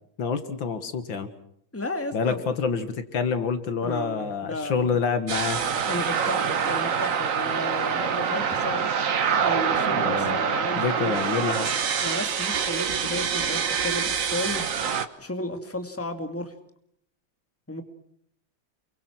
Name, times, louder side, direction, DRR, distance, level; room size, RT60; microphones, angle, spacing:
voice 1, 0.2-1.3 2.1-5.6 9.9-10.4 10.8-11.7, left 5 dB, 70° left, 10 dB, 2.3 m, -27 dB
voice 2, 1.7-2.4 3.8-5.0 5.9-8.9 9.4-11.2 12.0-14.7 15.2-16.5 17.7-17.8, left 1 dB, 5° left, 7 dB, 2.3 m, -33 dB
sound 1, 5.3-15.1, right 7 dB, 45° right, 1.4 m, -25 dB
28.5 x 23.5 x 6.2 m, 0.68 s
omnidirectional pair, 2.2 m